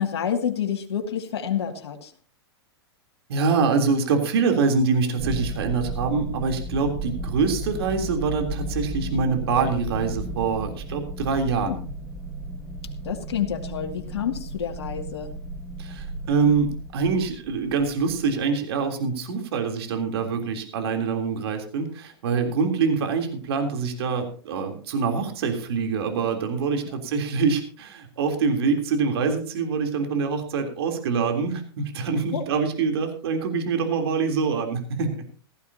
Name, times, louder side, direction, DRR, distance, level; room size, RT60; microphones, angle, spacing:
voice 1, 0.0-2.1 11.7-11.8 13.0-15.3 26.8-27.0 32.3-32.5, left 8 dB, 75° left, 3 dB, 2.3 m, -28 dB
voice 2, 3.3-11.8 15.8-35.1, right 5 dB, 70° right, 4 dB, 3.4 m, -25 dB
sound 1, 5.2-18.5, right 1 dB, 10° right, 1.9 m, -34 dB
17.5 x 14.5 x 2.8 m, 0.41 s
hypercardioid pair, 115°, 14 cm